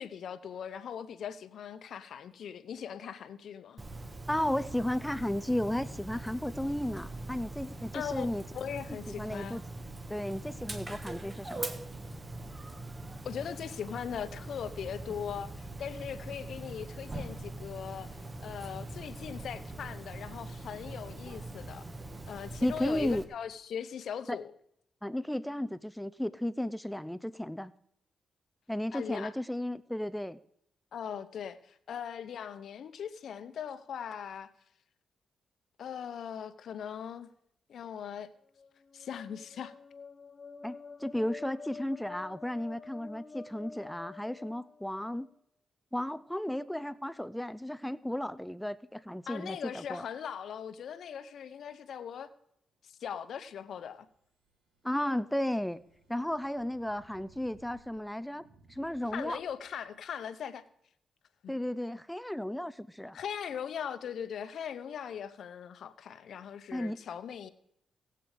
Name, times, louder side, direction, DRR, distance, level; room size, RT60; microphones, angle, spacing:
voice 1, 0.0-3.8 7.9-9.6 13.2-21.9 22.3-24.5 28.9-29.3 30.9-34.5 35.8-37.3 37.7-38.3 38.9-39.7 49.3-52.3 52.8-54.1 59.1-60.6 61.4-61.5 63.1-67.5, left 8 dB, 75° left, 0.8 m, -40 dB
Dog, 3.8-23.2, right 2 dB, 25° right, 1.5 m, -42 dB
voice 2, 4.3-8.4 9.1-9.6 10.1-11.7 22.6-23.2 24.3-24.4 25.0-27.7 28.7-30.4 40.6-45.3 45.9-50.0 54.8-55.8 56.1-59.4 61.5-63.2 66.7-67.0, left 1 dB, 5° left, 0.4 m, -34 dB
sound 1, 38.4-45.3, left 4 dB, 40° left, 0.9 m, -48 dB
sound 2, 53.6-60.0, right 2 dB, 85° right, 2.1 m, -63 dB
17.5 x 7.7 x 4.9 m
cardioid pair, 75°, 0 cm